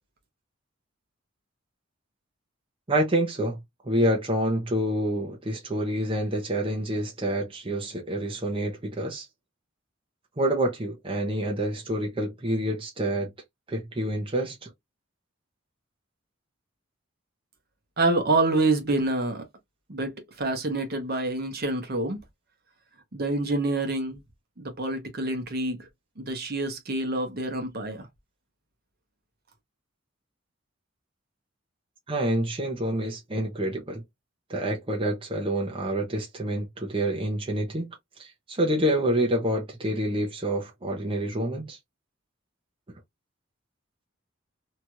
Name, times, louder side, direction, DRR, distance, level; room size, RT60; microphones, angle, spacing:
voice 1, 2.9-3.6 3.8-9.3 10.4-13.3 13.7-14.7 32.1-34.0 34.5-41.8, right 1 dB, 25° right, 0.7 m, -27 dB
voice 2, 18.0-19.4 19.9-22.2 23.1-24.2 24.6-25.9 26.2-28.1, right 2 dB, 50° right, 0.9 m, -27 dB
2.9 x 2.4 x 3.0 m
head